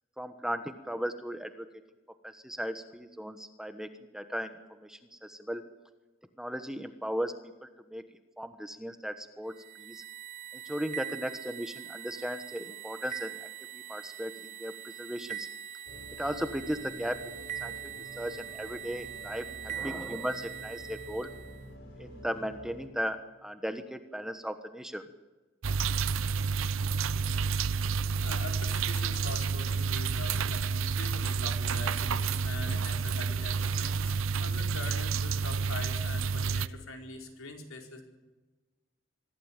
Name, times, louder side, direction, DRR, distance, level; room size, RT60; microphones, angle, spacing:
voice 1, 0.2-1.7 2.2-5.6 6.4-7.3 7.6-8.0 8.4-9.5 9.8-10.0 10.5-15.5 16.2-17.2 17.6-17.7 18.2-21.3 22.0-25.0, equal, 5° right, 8 dB, 1.2 m, -36 dB
sound 1, 9.5-21.6, right 10 dB, 35° right, 1.1 m, -42 dB
sound 2, 15.9-22.9, equal, 50° left, 5.3 m, -47 dB
sound 3, 25.6-36.7, right 5 dB, 75° right, 0.7 m, -30 dB
voice 2, 28.2-38.0, left 3 dB, 85° left, 3 dB, 4.7 m, -43 dB
24.0 x 15.5 x 9.0 m, 1.2 s
head